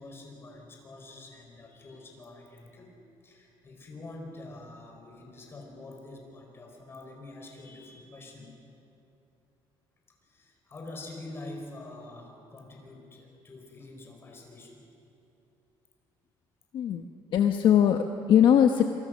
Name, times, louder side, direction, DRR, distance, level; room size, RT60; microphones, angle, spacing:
voice 1, 0.0-2.9 3.2-8.5 10.2-14.9, left 2 dB, 25° left, 1 dB, 4.8 m, -46 dB
voice 2, 16.7-17.0 17.3-18.8, left 9 dB, 55° left, 5 dB, 1.0 m, -21 dB
27.5 x 24.0 x 6.5 m, 2.8 s
cardioid pair, 160°, 9 cm